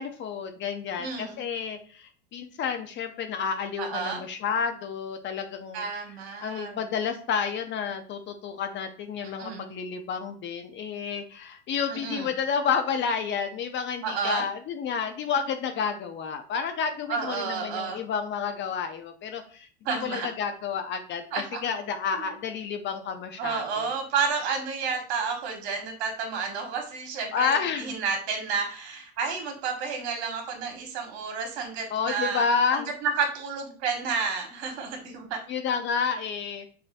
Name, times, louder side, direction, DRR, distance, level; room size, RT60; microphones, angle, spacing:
voice 1, 0.0-5.8 6.4-21.2 21.6-23.9 27.3-28.0 31.9-32.9 35.5-36.7, left 6 dB, 35° left, 7 dB, 0.5 m, -30 dB
voice 2, 1.0-1.4 3.8-4.2 5.7-6.8 9.4-9.7 11.9-12.3 14.0-14.5 17.1-18.0 19.8-20.3 21.3-21.8 22.1-22.3 23.4-35.4, right 5 dB, 80° right, 3 dB, 1.3 m, -31 dB
5.4 x 2.5 x 2.5 m, 0.43 s
supercardioid pair, 115°, 33 cm